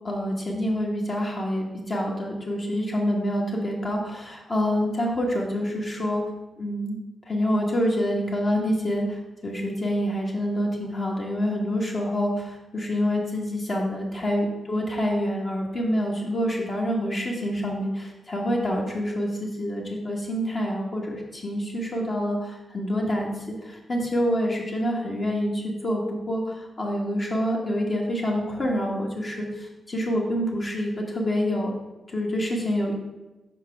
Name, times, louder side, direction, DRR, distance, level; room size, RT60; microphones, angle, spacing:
voice 1, 0.0-6.2 6.6-7.0 7.2-31.7 32.1-32.9, equal, 45° left, -2 dB, 1.2 m, -27 dB
4.9 x 4.5 x 5.8 m, 1.1 s
cardioid pair, 80°, 0 cm